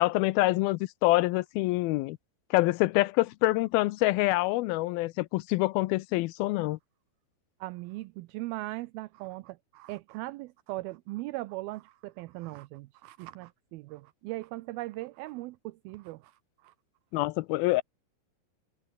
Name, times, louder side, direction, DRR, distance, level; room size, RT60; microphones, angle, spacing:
voice 1, 0.0-2.2 2.5-6.8 17.1-17.8, left 19 dB, 85° left, 2.2 m, -26 dB
voice 2, 7.6-16.7, right 19 dB, 85° right, 2.1 m, -39 dB
omnidirectional pair, 5.0 m